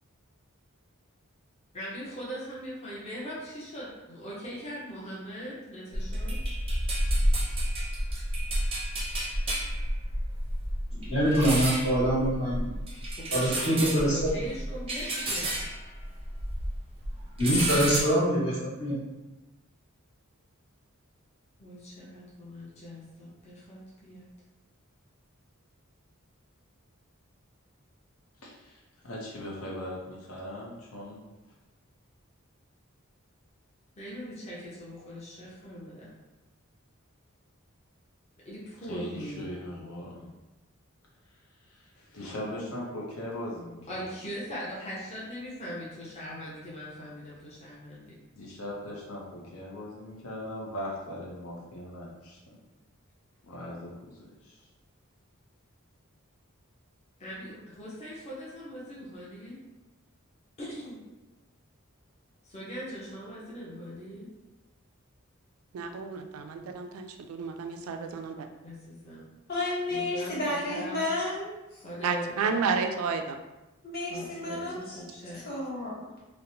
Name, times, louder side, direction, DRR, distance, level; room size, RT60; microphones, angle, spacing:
voice 1, 1.7-6.4 13.2-15.5 21.6-24.3 34.0-36.1 38.4-39.5 43.9-48.1 57.2-59.6 60.6-61.0 62.4-64.3 68.6-69.3 69.9-71.0 71.8-72.4 74.1-75.4, equal, 30° left, -7 dB, 0.6 m, -41 dB
sound 1, 5.9-16.8 17.0-18.0, right 1 dB, 25° right, 0.5 m, -30 dB
voice 2, 10.9-12.7 13.3-14.2 17.4-19.0, equal, 65° left, -9 dB, 1.4 m, -25 dB
voice 3, 28.4-31.2 38.9-40.3 41.7-44.1 48.3-52.6 53.4-54.6, left 1 dB, 85° left, -3 dB, 0.6 m, -39 dB
voice 4, 65.7-68.5 72.0-73.4, right 5 dB, 85° right, 7 dB, 0.3 m, -31 dB
voice 5, 69.5-71.6 73.8-75.0 75.4-76.0, left 2 dB, 50° left, -7 dB, 1.1 m, -32 dB
2.9 x 2.0 x 2.6 m, 1.1 s
head